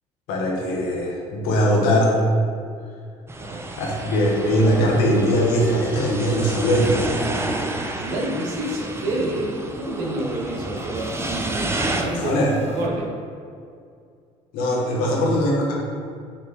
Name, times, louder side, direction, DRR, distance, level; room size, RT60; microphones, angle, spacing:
voice 1, 0.3-2.2 3.8-7.1 12.2-12.5 14.5-15.8, equal, 75° left, -2 dB, 1.5 m, -20 dB
sound 1, 3.3-12.0, right 2 dB, 15° right, 0.8 m, -30 dB
sound 2, 5.6-5.7 6.0-6.1 6.5-6.7 6.9-12.9, left 4 dB, 45° left, 0.7 m, -41 dB
voice 2, 8.0-13.2 15.0-15.2, right 1 dB, 75° right, -2 dB, 1.4 m, -28 dB
6.2 x 4.3 x 4.0 m, 2.3 s
hypercardioid pair, 65°, 15 cm